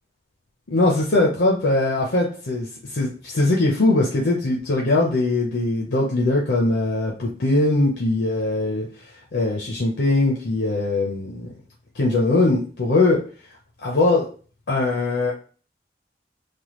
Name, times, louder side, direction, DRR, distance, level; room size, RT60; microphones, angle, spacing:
voice 1, 0.7-8.9 9.3-11.5 12.0-13.2 13.8-14.3 14.7-15.3, left 2 dB, 75° left, -2 dB, 0.6 m, -21 dB
3.3 x 2.2 x 3.0 m, 0.40 s
head